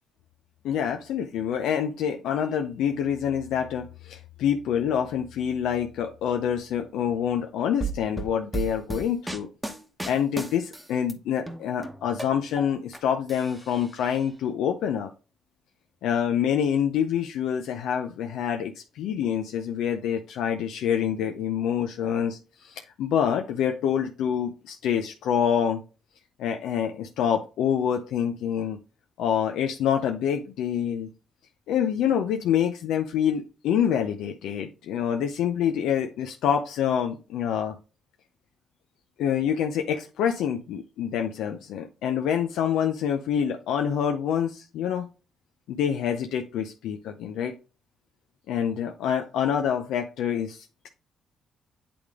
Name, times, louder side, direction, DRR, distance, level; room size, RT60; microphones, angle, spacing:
voice 1, 0.6-9.5 10.0-15.1 16.0-25.8 26.4-28.8 29.2-31.1 31.7-37.8 39.2-45.1 45.7-47.5 48.5-50.9, left 8 dB, 85° left, 4 dB, 0.5 m, -26 dB
sound 1, 7.8-11.1 11.5-13.0 13.3-14.2, right 3 dB, 5° right, 1.0 m, -34 dB
8.6 x 3.4 x 3.6 m, 0.34 s
cardioid pair, 90°, 0 cm